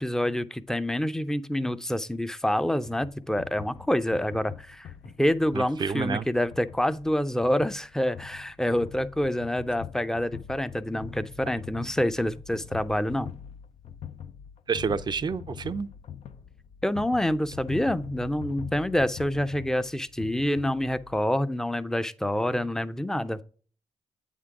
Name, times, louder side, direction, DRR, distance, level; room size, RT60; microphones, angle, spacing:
voice 1, 0.0-4.9 5.2-13.3 16.8-23.4, left 1 dB, 5° left, 0.5 m, -27 dB
sound 1, 2.8-21.2, left 8 dB, 65° left, 0.5 m, -44 dB
voice 2, 5.5-6.3 14.7-15.9, right 5 dB, 40° right, 0.5 m, -29 dB
8.1 x 3.7 x 4.7 m
supercardioid pair, 55°, 11 cm